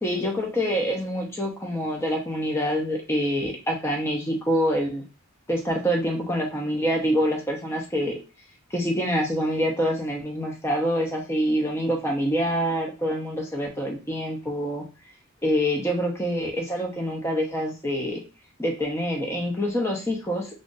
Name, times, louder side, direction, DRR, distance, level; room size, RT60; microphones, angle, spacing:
voice 1, 0.0-5.0 5.5-8.2 8.7-14.8 15.4-18.2 18.6-20.6, equal, 10° left, 0 dB, 0.7 m, -26 dB
2.5 x 2.5 x 3.8 m, 0.33 s
head